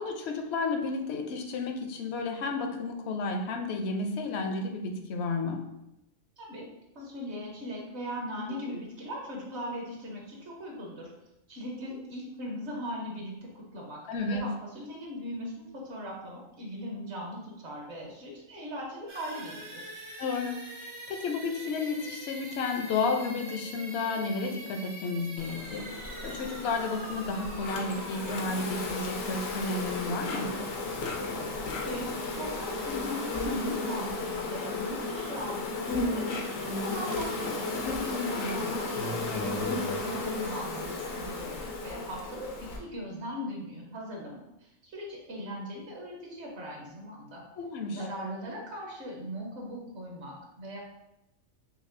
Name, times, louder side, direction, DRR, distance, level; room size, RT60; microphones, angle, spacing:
voice 1, 0.0-5.6 14.1-14.5 20.2-20.6 21.1-30.5 38.1-38.5 47.6-48.0, left 3 dB, 65° left, 4 dB, 0.7 m, -32 dB
voice 2, 6.4-6.7 6.9-11.1 11.5-14.5 14.7-19.9 31.8-37.7 38.0-39.7 40.0-42.5 42.8-47.4 47.9-50.8, equal, 60° right, -2 dB, 1.1 m, -39 dB
sound 1, 19.1-32.8, right 1 dB, 85° right, 1.4 m, -44 dB
Insect, 25.4-42.8, left 3 dB, 85° left, 1.1 m, -34 dB
5.9 x 2.3 x 2.6 m, 0.88 s
omnidirectional pair, 1.3 m